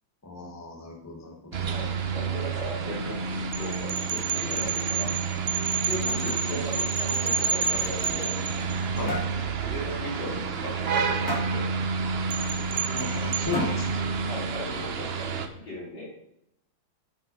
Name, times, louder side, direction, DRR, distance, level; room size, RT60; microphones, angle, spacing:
voice 1, 0.2-1.7 5.9-6.8 8.9-9.2 12.9-14.1, left 3 dB, 10° left, 1 dB, 1.1 m, -36 dB
sound 1, 1.5-15.5, right 5 dB, 80° right, 0.5 m, -30 dB
voice 2, 1.6-8.3 8.9-11.7 14.2-16.1, left 1 dB, 65° left, -6 dB, 4.5 m, -38 dB
sound 2, 3.5-9.0 12.3-13.4, right 5 dB, 50° right, 1.3 m, -30 dB
sound 3, 8.3-8.8 9.1-9.4 9.8-10.0 10.3-10.4 11.3-11.6 12.8-12.9 13.5-14.0, left 1 dB, 35° left, 1.7 m, -34 dB
10.0 x 5.5 x 5.6 m, 0.79 s
omnidirectional pair, 2.2 m